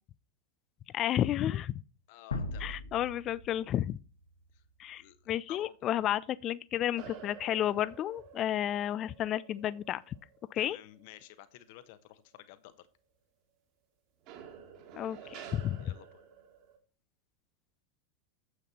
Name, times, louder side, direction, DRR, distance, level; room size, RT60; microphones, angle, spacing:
voice 1, 0.9-1.8 2.6-4.0 4.8-10.2 10.5-10.8 14.9-15.9, left 11 dB, 30° left, 0.4 m, -32 dB
voice 2, 2.1-2.8 4.5-4.6 5.0-5.8 10.6-12.9 15.2-15.3 15.8-16.2, left 14 dB, 50° left, 1.1 m, -53 dB
sound 1, 2.3-5.2, left 2 dB, 70° left, 1.9 m, -41 dB
sound 2, 7.0-11.8 12.2-12.6 14.3-16.8, right 8 dB, 40° right, 1.9 m, -51 dB
9.5 x 8.2 x 4.2 m
figure-of-eight pair, 90°, 0 cm